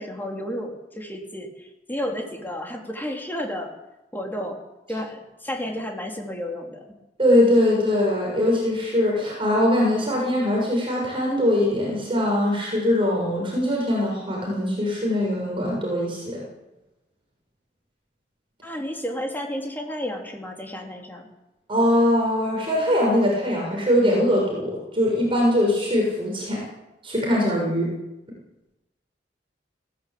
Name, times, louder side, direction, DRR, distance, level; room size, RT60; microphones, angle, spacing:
voice 1, 0.0-3.7 4.1-4.6 4.9-6.8 18.6-21.2, equal, 10° left, 1 dB, 3.7 m, -32 dB
voice 2, 7.2-16.4 21.7-26.6 27.0-27.9, left 1 dB, 30° right, -2 dB, 6.9 m, -22 dB
21.0 x 18.0 x 8.7 m, 0.97 s
head